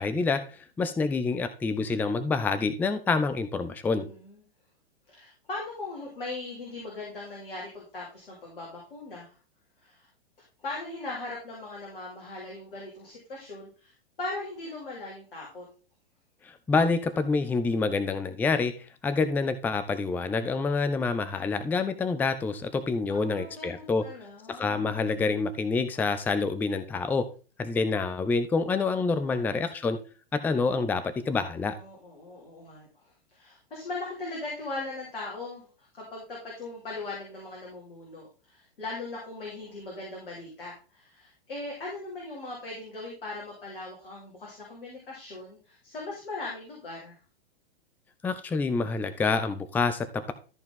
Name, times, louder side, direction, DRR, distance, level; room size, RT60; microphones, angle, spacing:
voice 1, 0.0-4.1 16.4-24.0 24.5-27.3 27.6-30.0 30.3-31.8 48.2-50.3, left 4 dB, 5° left, 11 dB, 0.5 m, -27 dB
voice 2, 4.0-4.4 5.1-9.3 9.8-10.1 10.6-15.6 23.1-24.9 29.3-29.4 31.7-32.9 33.3-35.7 35.9-47.2, left 2 dB, 65° left, -4 dB, 3.6 m, -39 dB
14.0 x 4.6 x 3.7 m, 0.36 s
figure-of-eight pair, 100°, 30 cm